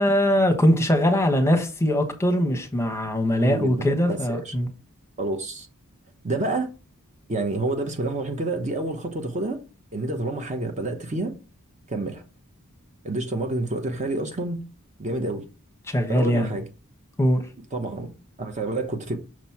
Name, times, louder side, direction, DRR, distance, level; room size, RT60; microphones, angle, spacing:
voice 1, 0.0-4.7 15.9-16.5 17.2-17.4, equal, 10° left, 1.0 m, -21 dB
voice 2, 3.4-4.5 5.2-5.7 6.2-6.7 7.3-9.6 9.9-11.3 11.9-12.2 13.0-14.6 15.0-15.4 16.1-16.7 17.7-18.1 18.4-19.2, right 2 dB, 30° right, 0.8 m, -28 dB
6.2 x 3.0 x 5.7 m
head